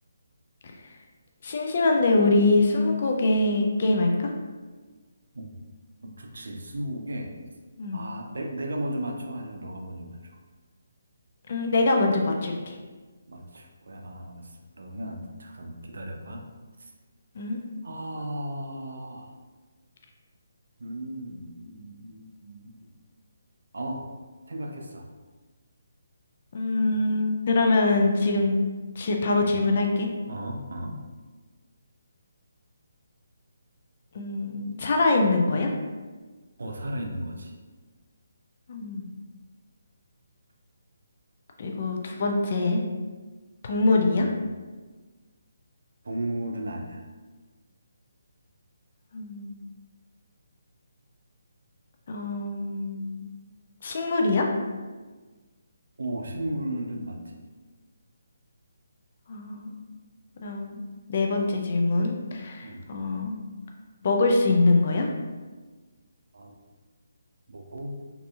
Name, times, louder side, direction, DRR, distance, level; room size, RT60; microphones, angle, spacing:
voice 1, 1.4-4.3 7.8-8.0 11.5-12.8 17.4-17.6 26.5-28.6 29.0-30.1 34.1-35.7 38.7-39.1 41.6-42.8 43.6-44.3 49.1-49.6 52.1-53.3 53.8-54.5 59.3-59.7 60.4-60.8 61.1-63.4 64.0-65.1, left 2 dB, 50° left, 2 dB, 0.3 m, -24 dB
voice 2, 6.0-7.3 7.9-10.2 13.3-14.4 14.7-16.4 16.8-16.9 17.8-19.3 20.8-22.8 23.7-24.1 24.5-25.0 29.4-29.6 30.3-31.0 36.6-37.5 44.1-44.3 46.0-47.0 56.0-57.4 62.6-62.9 66.3-66.5 67.5-68.0, right 1 dB, 75° right, 2 dB, 0.4 m, -35 dB
2.6 x 2.6 x 2.3 m, 1.3 s
figure-of-eight pair, 155°, 0 cm